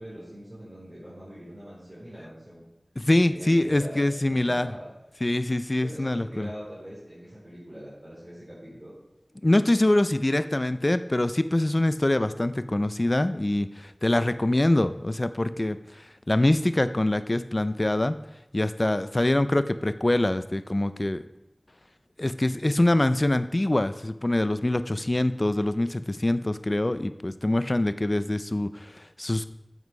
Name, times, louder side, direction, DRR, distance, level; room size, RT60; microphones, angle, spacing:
voice 1, 0.0-2.6 3.2-4.0 4.3-4.9 5.8-8.9, equal, 25° right, -9 dB, 4.1 m, -42 dB
voice 2, 3.0-4.7 5.2-6.5 9.4-18.2 18.5-21.2 22.2-29.5, left 1 dB, 40° left, 12 dB, 0.5 m, -24 dB
8.0 x 7.3 x 5.5 m, 0.92 s
wide cardioid pair, 45°, 0 cm